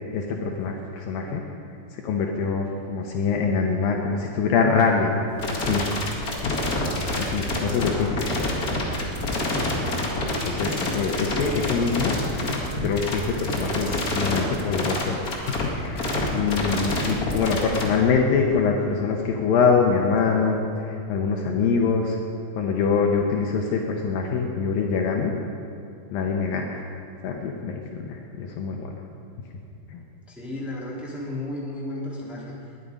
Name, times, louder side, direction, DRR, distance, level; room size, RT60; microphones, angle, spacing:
voice 1, 0.1-1.4 1.9-5.1 5.5-5.8 6.4-6.6 7.2-8.1 10.0-10.2 10.4-12.1 12.8-22.2 22.5-25.3 26.1-26.8 27.2-29.0 29.9-30.0, left 5 dB, 70° left, 1 dB, 2.4 m, -24 dB
sound 1, 5.4-17.8, left 2 dB, 35° left, 1.4 m, -27 dB
voice 2, 7.6-8.8 30.3-32.8, left 1 dB, ahead, -6 dB, 2.2 m, -35 dB
20.5 x 11.0 x 5.2 m, 2.6 s
omnidirectional pair, 4.7 m